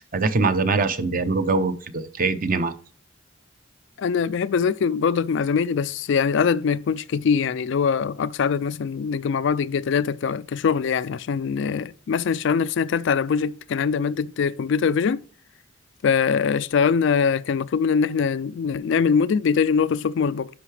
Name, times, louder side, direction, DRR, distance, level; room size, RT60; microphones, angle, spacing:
voice 1, 0.0-2.7, right 3 dB, 45° right, 0.7 m, -23 dB
voice 2, 4.0-15.2 16.0-20.5, left 6 dB, 65° left, 0.4 m, -22 dB
10.0 x 5.6 x 3.3 m
head